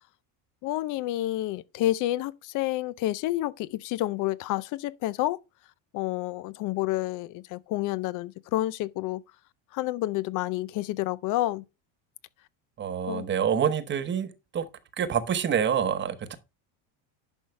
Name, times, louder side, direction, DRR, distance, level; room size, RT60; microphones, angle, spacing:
voice 1, 0.6-5.4 5.9-9.2 9.7-11.6 13.1-13.3, left 15 dB, 50° left, 0.6 m, -29 dB
voice 2, 12.8-14.7 15.0-16.4, right 8 dB, 30° right, 1.0 m, -27 dB
10.5 x 5.6 x 3.2 m
cardioid pair, 135°, 40 cm